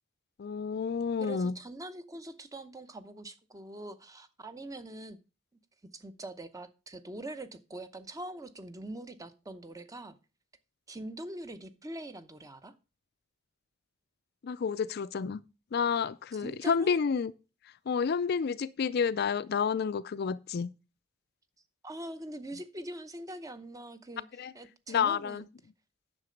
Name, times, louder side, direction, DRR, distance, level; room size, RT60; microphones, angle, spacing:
voice 1, 0.4-1.5 14.4-15.4 15.7-17.3 17.9-20.7 24.4-24.5 24.9-25.4, left 6 dB, 50° left, 0.4 m, -30 dB
voice 2, 1.2-5.2 5.9-10.2 10.9-12.7 16.3-17.0 21.8-25.5, right 1 dB, 15° right, 0.8 m, -43 dB
9.7 x 6.7 x 5.1 m
head